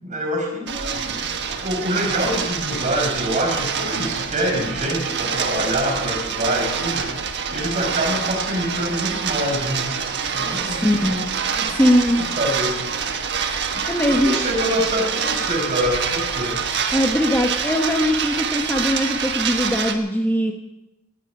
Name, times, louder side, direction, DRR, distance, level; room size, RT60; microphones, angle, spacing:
voice 1, 0.0-9.9 10.3-10.8 11.5-11.7 12.1-12.8 13.8-14.0 14.2-16.6, equal, 40° right, 1 dB, 5.2 m, -25 dB
sound 1, 0.7-20.0, right 6 dB, 55° right, 1.4 m, -26 dB
voice 2, 10.6-11.3 11.7-12.2 13.9-14.3 16.9-20.5, equal, 10° left, 2 dB, 1.1 m, -20 dB
18.0 x 14.5 x 4.9 m, 0.90 s
head